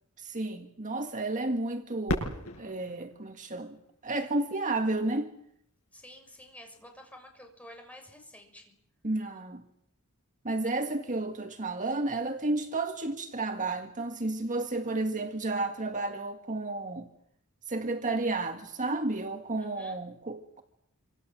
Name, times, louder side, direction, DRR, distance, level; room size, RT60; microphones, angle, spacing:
voice 1, 0.2-3.8 4.0-5.3 9.0-9.6 10.4-17.1 17.7-20.6, right 2 dB, 35° right, 1.8 m, -32 dB
Fireworks, 2.1-4.8 5.5-5.6 6.3-6.7 8.6-8.8, left 1 dB, 80° left, 7.2 m, -37 dB
voice 2, 5.9-8.7 19.6-20.0, left 1 dB, 5° left, 6.7 m, -50 dB
27.0 x 26.5 x 7.6 m
head